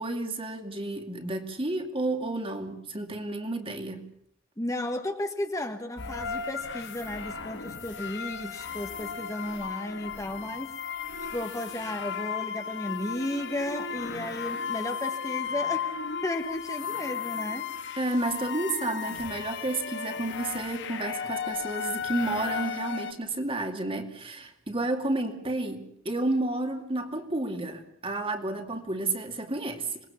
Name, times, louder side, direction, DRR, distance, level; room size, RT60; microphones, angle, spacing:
voice 1, 0.0-4.1 18.0-30.0, right 2 dB, 30° right, 5 dB, 2.4 m, -31 dB
voice 2, 4.6-10.7 11.3-16.0 16.2-17.7, left 1 dB, 15° left, 5 dB, 1.4 m, -34 dB
sound 1, 6.0-23.1, left 7 dB, 65° left, 1.6 m, -35 dB
26.5 x 20.5 x 7.1 m, 0.65 s
head